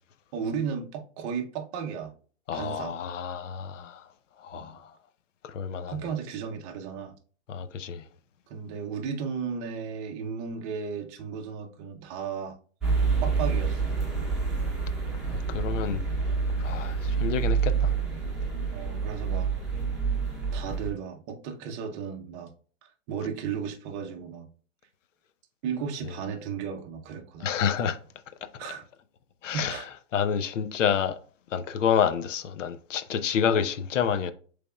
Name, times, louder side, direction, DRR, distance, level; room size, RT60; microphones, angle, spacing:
voice 1, 0.3-2.1 2.5-3.0 4.5-4.8 5.9-7.1 8.5-12.5 13.2-13.9 18.7-19.5 20.5-22.5 23.1-24.5 25.6-27.6 27.8-27.9 28.6-28.8 29.5-29.9, right 6 dB, 25° right, 0.6 m, -34 dB
voice 2, 2.5-3.9 4.5-4.7 5.5-5.9 7.5-8.0 15.5-16.0 16.6-17.9 27.4-28.0 29.4-29.7 30.1-31.2 31.5-34.3, left 7 dB, 85° left, 0.7 m, -28 dB
sound 1, 12.8-20.9, right 5 dB, ahead, 1.1 m, -27 dB
6.8 x 3.4 x 2.3 m
hypercardioid pair, 155°, 36 cm